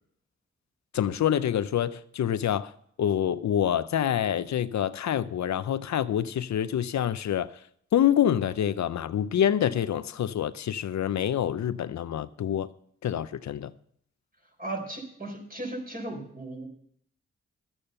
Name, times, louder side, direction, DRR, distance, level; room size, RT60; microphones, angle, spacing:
voice 1, 0.9-2.7 3.0-7.5 7.9-12.7 13.0-13.7, left 10 dB, 70° left, 0.6 m, -26 dB
voice 2, 14.6-16.7, right 2 dB, 30° right, 4.1 m, -36 dB
12.0 x 8.8 x 5.5 m
cardioid pair, 70°, 29 cm